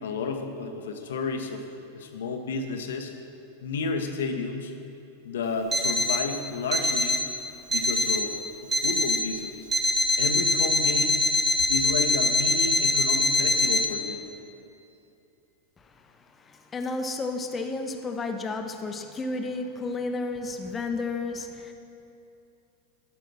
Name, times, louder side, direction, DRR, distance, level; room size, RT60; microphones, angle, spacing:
voice 1, 0.0-1.6 1.9-3.1 3.6-4.7 5.2-7.2 7.7-8.4 8.6-9.7 10.2-11.2 11.7-14.3, left 4 dB, 65° left, 5 dB, 0.9 m, -31 dB
Alarm, 5.7-6.3 6.7-7.3 7.7-8.3 8.7-9.3 9.7-13.8, left 1 dB, 10° right, 0.8 m, -23 dB
voice 2, 15.8-21.7, left 3 dB, 20° left, 6 dB, 0.8 m, -32 dB
13.0 x 5.0 x 6.0 m, 2.7 s
figure-of-eight pair, 90°, 0 cm